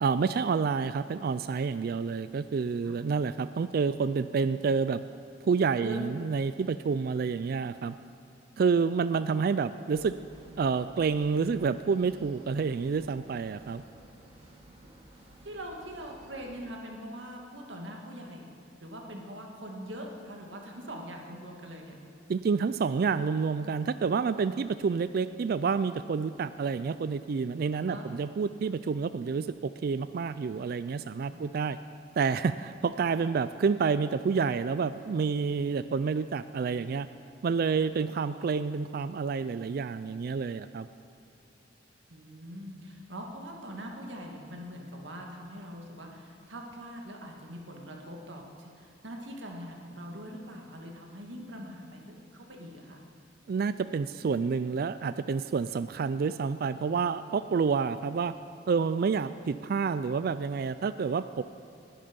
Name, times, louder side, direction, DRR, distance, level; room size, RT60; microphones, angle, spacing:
voice 1, 0.0-5.0 5.4-8.0 8.6-10.2 10.6-13.8 22.3-31.8 32.2-37.1 37.4-40.9 53.5-58.3 58.7-61.4, right 5 dB, 55° right, 13 dB, 0.3 m, -29 dB
sound 1, 9.9-16.6, right 1 dB, 35° right, 2.2 m, -54 dB
voice 2, 15.4-22.0 27.7-28.0 31.3-31.5 42.1-53.0, equal, 85° right, 1 dB, 2.1 m, -43 dB
19.5 x 11.0 x 5.3 m, 2.7 s
head